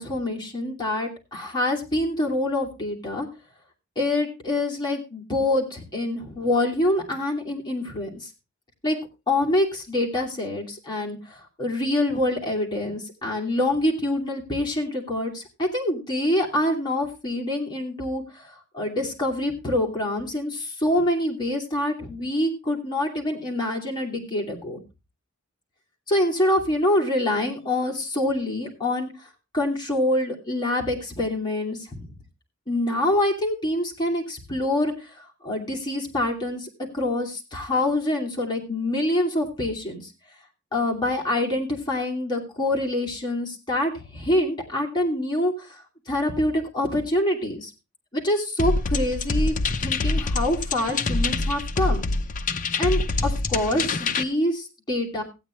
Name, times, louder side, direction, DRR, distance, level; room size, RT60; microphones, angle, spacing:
voice 1, 0.0-3.3 4.0-8.3 8.8-9.0 9.3-24.8 26.1-29.3 29.5-32.1 32.7-36.7 36.9-40.1 40.7-47.7 48.1-52.0 52.8-55.2, left 1 dB, 20° left, -1 dB, 2.7 m, -26 dB
sound 1, 48.6-54.2, left 3 dB, 35° left, 0.6 m, -25 dB
16.0 x 9.0 x 3.1 m, 0.27 s
head